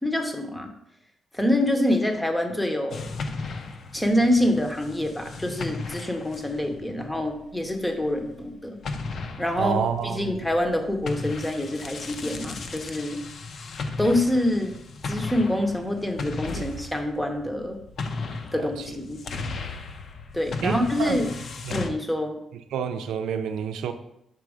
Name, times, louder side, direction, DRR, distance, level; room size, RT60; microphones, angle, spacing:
voice 1, 0.0-0.7 1.3-3.1 3.9-8.8 9.4-9.8 10.0-13.2 14.0-14.7 15.0-17.8 18.5-19.2 20.3-21.3 21.7-22.4, left 1 dB, 5° left, 4 dB, 0.7 m, -26 dB
sound 1, 2.9-8.5 8.8-21.9, left 3 dB, 40° left, 0.5 m, -36 dB
voice 2, 9.6-10.3 18.6-18.7 20.6-21.2 21.6-21.9 22.7-23.9, right 7 dB, 85° right, 8 dB, 0.5 m, -28 dB
6.2 x 3.9 x 4.8 m, 0.79 s
cardioid pair, 175°, 0 cm